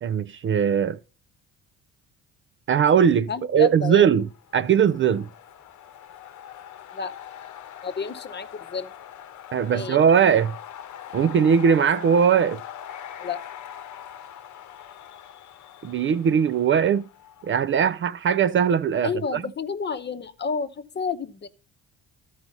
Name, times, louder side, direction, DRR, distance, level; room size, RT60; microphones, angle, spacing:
voice 1, 0.0-1.0 2.7-4.3 4.5-5.3 9.5-10.5 11.1-12.6 15.8-17.0 17.5-19.4, right 7 dB, 40° right, 0.4 m, -20 dB
voice 2, 3.3-4.2 6.9-7.1 7.8-8.9 9.6-10.0 13.2-13.4 19.0-21.5, left 5 dB, 30° left, 0.9 m, -30 dB
sound 1, 4.1-17.9, left 10 dB, 60° left, 0.9 m, -42 dB
13.0 x 4.8 x 5.3 m
cardioid pair, 90°, 33 cm